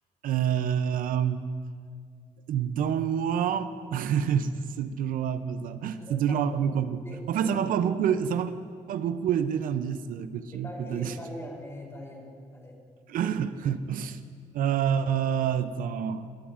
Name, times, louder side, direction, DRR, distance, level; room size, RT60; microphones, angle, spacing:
voice 1, 0.2-1.4 2.5-4.5 4.8-8.5 8.9-11.1 13.1-14.2 14.5-16.3, right 8 dB, 70° right, 12 dB, 0.5 m, -27 dB
voice 2, 6.0-6.4 7.0-7.5 10.5-12.7, left 1 dB, 20° left, -1 dB, 3.3 m, -42 dB
20.5 x 11.0 x 2.5 m, 2.1 s
supercardioid pair, 65°, 15 cm